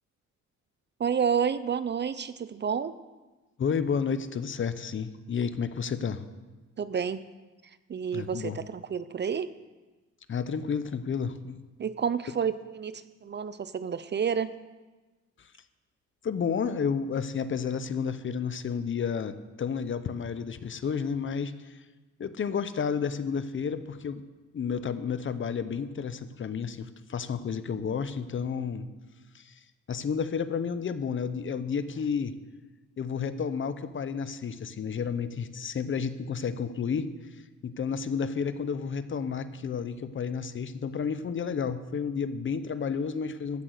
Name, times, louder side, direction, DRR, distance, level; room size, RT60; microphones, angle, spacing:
voice 1, 1.0-2.9 6.8-7.2 7.9-9.5 11.8-14.5, right 7 dB, 35° right, 14 dB, 0.5 m, -30 dB
voice 2, 3.6-6.2 8.1-8.6 10.3-11.6 16.2-21.8 22.2-24.2 24.5-28.9 29.3-29.5 29.9-32.3 33.0-37.1 37.6-43.6, left 6 dB, 40° left, 13 dB, 0.8 m, -31 dB
14.5 x 7.5 x 6.6 m, 1.2 s
cardioid pair, 90°, 30 cm